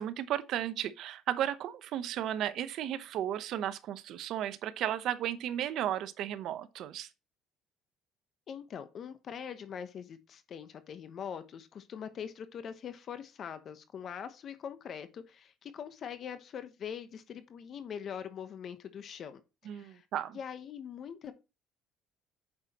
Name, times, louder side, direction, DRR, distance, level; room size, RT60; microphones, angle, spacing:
voice 1, 0.0-7.1 19.6-20.4, right 11 dB, 65° right, 0.9 m, -34 dB
voice 2, 8.5-20.0 20.3-21.3, left 8 dB, 45° left, 1.0 m, -43 dB
8.8 x 6.1 x 2.9 m
cardioid pair, 120°, 0 cm